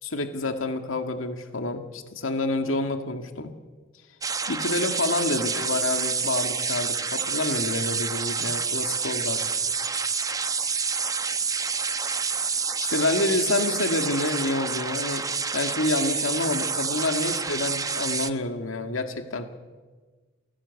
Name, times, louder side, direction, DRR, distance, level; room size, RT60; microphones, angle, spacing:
voice 1, 0.0-3.5 4.5-9.4 12.8-15.2 15.5-19.5, left 2 dB, 85° left, 6 dB, 2.1 m, -28 dB
sound 1, 4.2-18.3, right 5 dB, 20° right, 0.8 m, -28 dB
29.0 x 17.5 x 8.4 m, 1.4 s
head